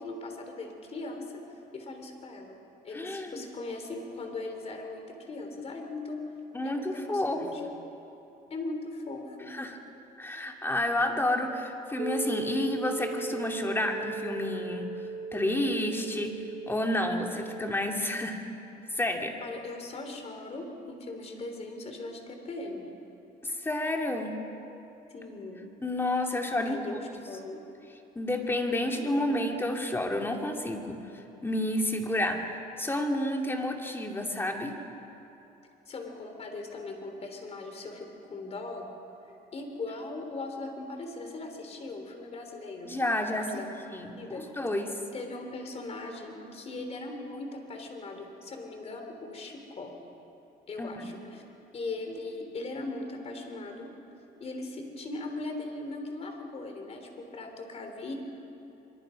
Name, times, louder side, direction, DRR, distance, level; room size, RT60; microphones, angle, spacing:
voice 1, 0.0-1.4 1.7-2.6 2.8-6.2 6.6-7.6 8.5-9.6 19.4-22.9 25.1-25.7 26.6-27.0 27.3-27.6 28.8-29.4 35.9-38.9 39.5-43.0 43.4-43.7 44.2-44.5 45.1-49.9 50.7-51.4 51.7-53.9 54.4-58.1, left 2 dB, 40° left, 4 dB, 3.6 m, -39 dB
voice 2, 2.9-3.4 6.5-7.7 9.5-9.8 10.2-14.9 15.3-16.4 16.7-18.4 18.9-19.4 23.4-24.3 25.8-27.0 28.2-34.7 42.8-43.5 43.9-45.0 50.8-51.1, left 1 dB, 15° left, 2 dB, 2.4 m, -30 dB
sound 1, 12.0-17.7, right 4 dB, 35° right, 0.9 m, -37 dB
24.5 x 23.0 x 5.2 m, 2.9 s
cardioid pair, 110°, 17 cm